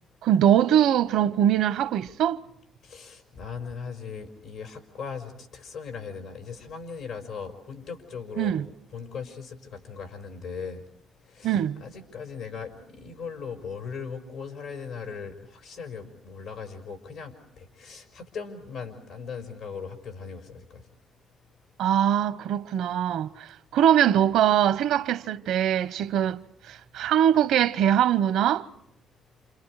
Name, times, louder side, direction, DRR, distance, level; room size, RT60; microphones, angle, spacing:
voice 1, 0.2-2.4 8.4-8.7 11.4-11.8 21.8-28.7, right 10 dB, 85° right, 0.9 m, -22 dB
voice 2, 2.8-8.5 8.9-10.8 11.3-20.8, left 5 dB, 85° left, 5.1 m, -39 dB
29.0 x 28.0 x 4.8 m
cardioid pair, 90°, 0 cm